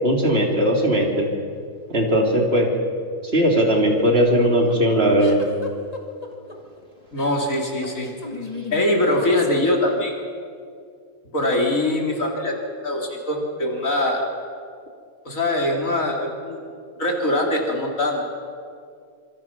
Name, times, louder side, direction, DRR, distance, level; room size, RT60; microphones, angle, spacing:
voice 1, 0.0-1.3 1.9-2.7 3.3-5.4, equal, 45° right, 1 dB, 3.4 m, -18 dB
sound 1, 4.0-10.2, left 3 dB, 25° left, 2.3 m, -36 dB
voice 2, 7.1-8.1 8.7-10.1 11.3-12.6 12.8-14.3 15.3-16.6 17.0-18.2, left 1 dB, 65° left, 0 dB, 3.9 m, -22 dB
26.0 x 24.5 x 6.1 m, 2.3 s
omnidirectional pair, 1.5 m